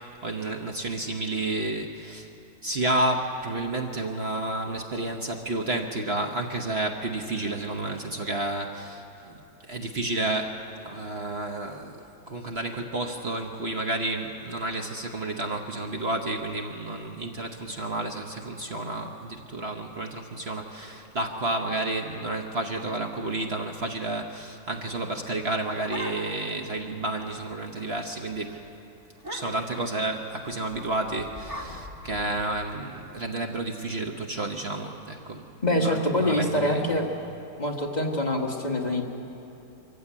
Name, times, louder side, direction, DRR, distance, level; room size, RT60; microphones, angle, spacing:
voice 1, 0.0-2.3 2.6-28.6 29.3-35.5 35.7-36.8, right 2 dB, 45° right, 3 dB, 1.2 m, -31 dB
sound 1, 25.6-26.6 26.9-27.0 27.3-27.6 28.0-28.2 28.5-28.6 29.1-29.8 30.7-32.7, equal, 10° right, 2.1 m, -40 dB
voice 2, 35.6-37.1 37.6-39.0, left 1 dB, 30° left, 0 dB, 1.6 m, -25 dB
24.0 x 15.0 x 8.5 m, 2.9 s
omnidirectional pair, 1.6 m